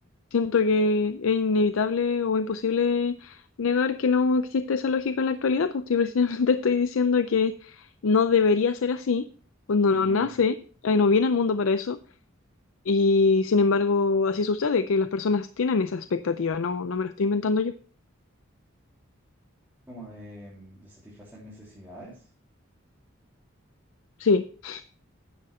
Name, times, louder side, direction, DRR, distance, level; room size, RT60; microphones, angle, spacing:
voice 1, 0.3-9.3 9.7-10.5 10.8-12.0 12.9-17.7 24.2-24.8, left 4 dB, 80° left, 11 dB, 0.5 m, -23 dB
voice 2, 9.9-10.3 19.9-22.3, right 2 dB, 10° right, -8 dB, 3.1 m, -44 dB
10.0 x 7.6 x 4.3 m, 0.42 s
head